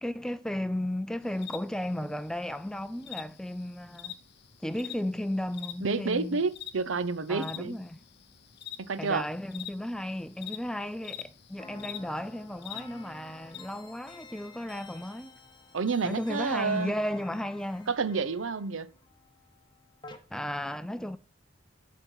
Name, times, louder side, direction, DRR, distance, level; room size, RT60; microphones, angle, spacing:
voice 1, 0.0-4.2 4.6-6.4 7.3-8.0 9.0-15.4 16.0-17.9 20.3-21.2, left 1 dB, 5° left, 0.4 m, -34 dB
sound 1, 1.2-13.6, left 11 dB, 55° left, 0.7 m, -46 dB
voice 2, 5.8-7.8 8.8-9.3 15.7-16.9 17.9-18.9, right 4 dB, 85° right, 0.7 m, -29 dB
sound 2, 11.6-20.2, left 3 dB, 25° left, 0.9 m, -51 dB
11.0 x 4.3 x 5.4 m
head